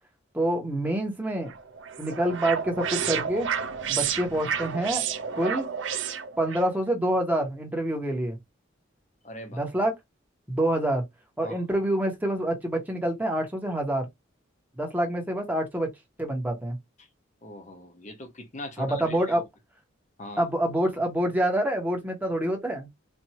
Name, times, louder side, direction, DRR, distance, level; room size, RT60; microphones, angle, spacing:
voice 1, 0.3-1.5 2.0-3.5 3.9-5.0 5.3-5.7 6.4-8.4 9.5-9.9 10.5-11.0 11.4-14.1 14.8-15.9 16.2-16.8 18.8-19.4 20.4-22.9, right 1 dB, 10° right, 1.2 m, -26 dB
sound 1, 1.5-6.7, right 7 dB, 70° right, 0.6 m, -31 dB
voice 2, 9.2-9.7 11.4-11.7 17.0-17.1 17.4-19.4 20.2-20.5, left 1 dB, 40° left, 0.9 m, -41 dB
4.3 x 2.6 x 2.9 m
head